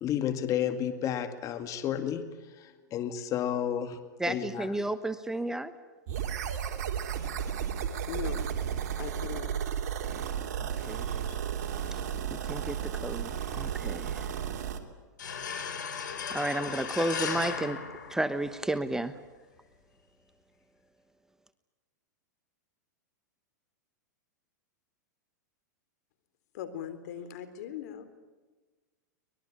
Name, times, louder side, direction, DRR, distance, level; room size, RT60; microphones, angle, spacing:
voice 1, 0.0-4.0 4.3-4.7, left 10 dB, 35° left, 9 dB, 2.1 m, -32 dB
voice 2, 4.2-5.7 10.6-11.1 11.9-12.0 12.3-14.3 16.3-17.8 18.1-19.2, right 1 dB, 5° right, 12 dB, 1.1 m, -32 dB
sound 1, 6.1-14.8, right 8 dB, 60° right, 3.3 m, -33 dB
voice 3, 8.1-8.5 9.0-9.6 11.3-11.4 26.5-28.0, left 10 dB, 60° left, 12 dB, 3.9 m, -39 dB
sound 2, 15.2-18.8, left 6 dB, 80° left, 4.1 m, -36 dB
24.0 x 21.0 x 9.8 m, 1.3 s
hypercardioid pair, 120°, 10 cm